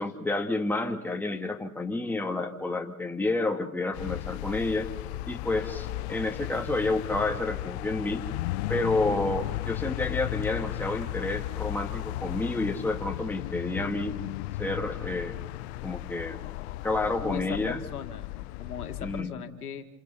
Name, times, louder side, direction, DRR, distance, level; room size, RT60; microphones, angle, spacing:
voice 1, 0.0-4.9 5.3-8.2 8.7-14.2 14.6-15.4 15.8-16.4 16.8-17.8 19.0-19.4, left 2 dB, 5° left, 3 dB, 1.9 m, -30 dB
sound 1, 3.9-19.2, left 17 dB, 50° left, 0.7 m, -35 dB
voice 2, 17.2-19.8, left 8 dB, 85° left, 6 dB, 1.9 m, -38 dB
28.0 x 27.5 x 4.2 m, 0.96 s
hypercardioid pair, 100°, 44 cm